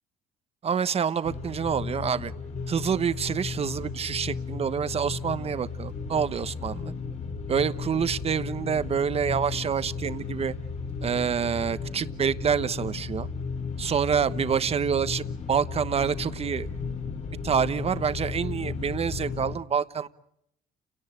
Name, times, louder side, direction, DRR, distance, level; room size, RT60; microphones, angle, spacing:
voice 1, 0.6-2.3 2.7-6.9 7.5-10.5 11.0-13.3 13.8-16.7 17.4-20.1, right 7 dB, 35° right, 13 dB, 1.1 m, -27 dB
sound 1, 1.2-19.6, left 5 dB, 40° left, 2.7 m, -35 dB
30.0 x 17.5 x 9.0 m, 0.79 s
cardioid pair, 110°, 17 cm